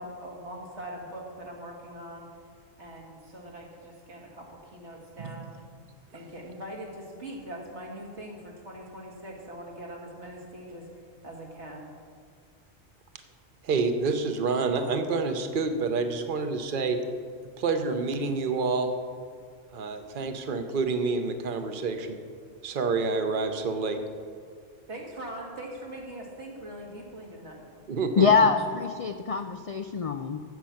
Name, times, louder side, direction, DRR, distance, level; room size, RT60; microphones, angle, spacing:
voice 1, 0.0-2.3 2.8-5.5 6.1-10.9 11.2-11.9 24.9-27.7, right 1 dB, 80° right, -1 dB, 2.3 m, -42 dB
voice 2, 13.6-17.0 17.6-19.0 19.7-22.2 22.6-24.0 27.9-28.5, right 4 dB, 50° right, 7 dB, 1.0 m, -28 dB
voice 3, 28.2-30.4, left 5 dB, 60° left, 7 dB, 0.3 m, -24 dB
14.0 x 7.5 x 5.8 m, 2.1 s
omnidirectional pair, 1.2 m